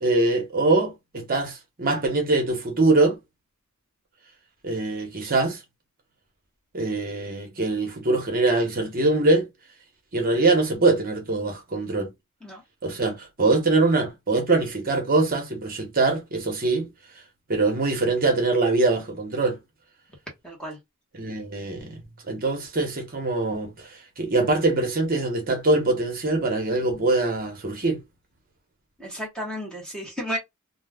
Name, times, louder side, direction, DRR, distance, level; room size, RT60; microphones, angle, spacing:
voice 1, 0.0-3.2 4.6-5.6 6.7-9.5 10.1-12.1 12.8-16.9 17.5-19.6 21.1-22.0 22.3-28.0, right 2 dB, 40° right, 0.8 m, -23 dB
voice 2, 20.4-20.8 29.0-30.4, equal, 5° left, 0.9 m, -33 dB
2.3 x 2.2 x 3.4 m
head